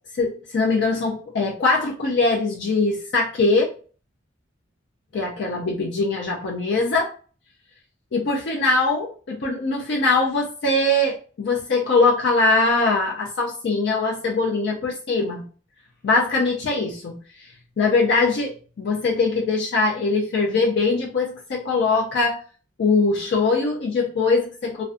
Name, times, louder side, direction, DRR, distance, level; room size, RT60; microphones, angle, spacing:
voice 1, 0.2-3.7 5.1-7.1 8.1-15.5 16.0-17.2 17.8-22.4 22.8-24.8, left 3 dB, 65° left, -1 dB, 0.4 m, -22 dB
2.4 x 2.2 x 2.4 m, 0.40 s
head